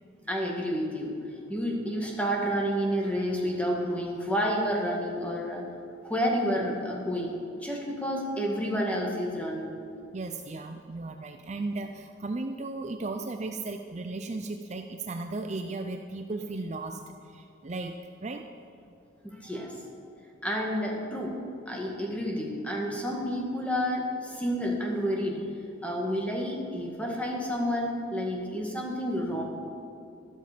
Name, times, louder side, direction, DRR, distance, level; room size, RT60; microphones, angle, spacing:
voice 1, 0.3-1.1 1.5-5.6 6.0-9.7 19.2-19.8 20.4-21.4 21.7-25.4 25.8-29.4, equal, 5° left, -1 dB, 1.8 m, -30 dB
voice 2, 10.1-18.5, right 3 dB, 35° right, 6 dB, 0.5 m, -36 dB
12.5 x 12.5 x 5.1 m, 2.7 s
head